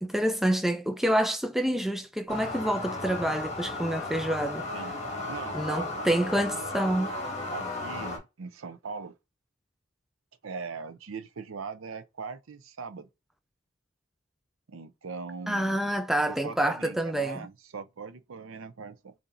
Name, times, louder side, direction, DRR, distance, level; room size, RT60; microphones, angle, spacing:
voice 1, 0.0-4.7 5.5-7.1 15.5-17.5, right 1 dB, ahead, 0.3 m, -27 dB
sound 1, 2.3-8.2, left 2 dB, 30° left, 1.6 m, -35 dB
voice 2, 5.3-6.1 6.4-6.6 7.5-9.2 10.4-13.1 14.7-16.0 16.4-19.1, right 5 dB, 80° right, 0.5 m, -40 dB
6.8 x 2.6 x 2.6 m
head